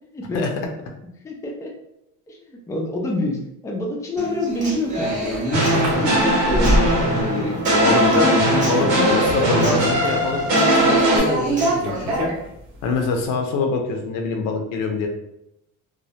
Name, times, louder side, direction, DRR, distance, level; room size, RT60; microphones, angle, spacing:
voice 1, 0.1-0.4 1.0-1.7 2.3-10.0, left 1 dB, 10° left, -1 dB, 0.4 m, -27 dB
Human voice / Acoustic guitar, 4.2-12.2, right 1 dB, 25° right, 0.7 m, -31 dB
sound 1, 4.7-7.2 7.5-8.0 8.4-8.7 9.0-10.4 10.7-12.9, right 2 dB, 60° right, 0.8 m, -25 dB
sound 2, 5.5-11.2, equal, 85° right, 1.1 m, -19 dB
voice 2, 7.8-8.4 8.7-12.3 12.8-15.1, left 4 dB, 75° left, 3 dB, 0.6 m, -24 dB
2.2 x 2.0 x 2.8 m, 0.82 s
cardioid pair, 100°, 32 cm